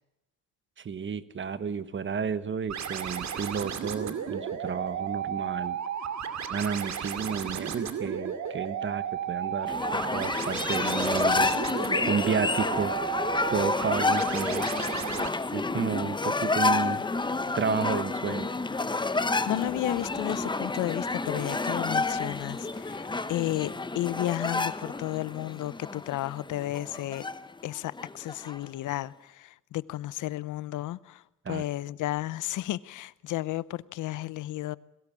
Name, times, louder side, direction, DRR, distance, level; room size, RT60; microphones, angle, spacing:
voice 1, 0.8-5.8 6.5-11.6 12.0-12.9 13.5-14.8 15.5-17.0 17.5-18.5 31.4-31.6, right 6 dB, 40° right, 1.3 m, -31 dB
sound 1, 2.7-15.3, right 8 dB, 65° right, 2.4 m, -34 dB
sound 2, 9.7-28.6, left 3 dB, 15° left, 0.9 m, -29 dB
voice 2, 19.1-27.3 27.6-34.8, left 15 dB, 80° left, 0.7 m, -33 dB
22.0 x 17.0 x 8.6 m
cardioid pair, 90°, 30 cm